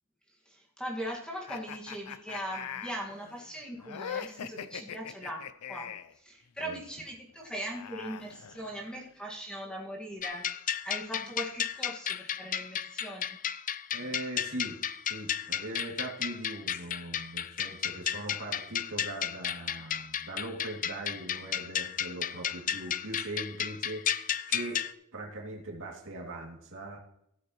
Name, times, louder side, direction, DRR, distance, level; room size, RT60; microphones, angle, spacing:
voice 1, 0.5-10.4 10.8-13.4, right 1 dB, 5° left, -2 dB, 1.9 m, -40 dB
sound 1, 1.5-6.2 7.4-9.1, left 8 dB, 85° left, 0.6 m, -42 dB
sound 2, 10.2-24.9, left 9 dB, 35° left, 0.4 m, -33 dB
voice 2, 13.9-14.8 15.1-24.8 25.1-27.0, right 1 dB, 65° right, 0 dB, 2.6 m, -40 dB
15.5 x 8.1 x 3.1 m, 0.76 s
head